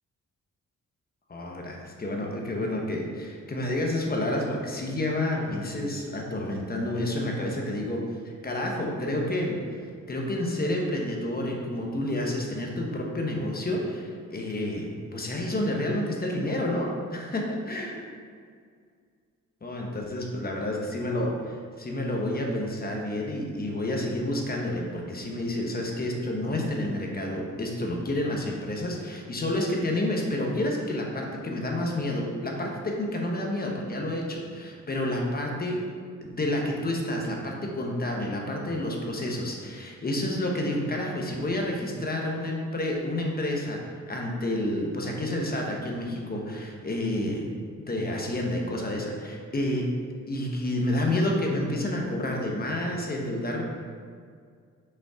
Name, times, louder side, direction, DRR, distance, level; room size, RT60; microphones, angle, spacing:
voice 1, 1.3-9.6 10.1-14.8 15.1-18.0 19.6-35.8 36.2-43.8 44.1-47.4 47.9-49.8 50.3-53.6, left 1 dB, 30° left, -1 dB, 1.1 m, -29 dB
6.1 x 5.3 x 3.7 m, 2.1 s
cardioid pair, 100°, 30 cm